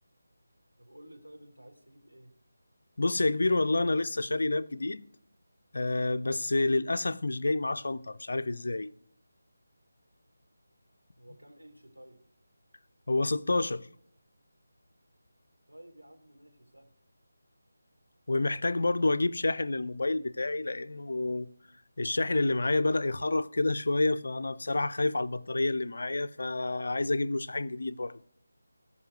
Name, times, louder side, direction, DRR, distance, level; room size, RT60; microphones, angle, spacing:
voice 1, 0.8-2.3 11.2-12.2 15.7-16.9, right 1 dB, 85° right, 3.2 m, -53 dB
voice 2, 3.0-5.0 5.7-8.9 13.1-13.9 18.3-21.5 22.0-28.1, left 2 dB, 55° left, 0.6 m, -28 dB
14.5 x 5.6 x 7.9 m
figure-of-eight pair, 160°, 0 cm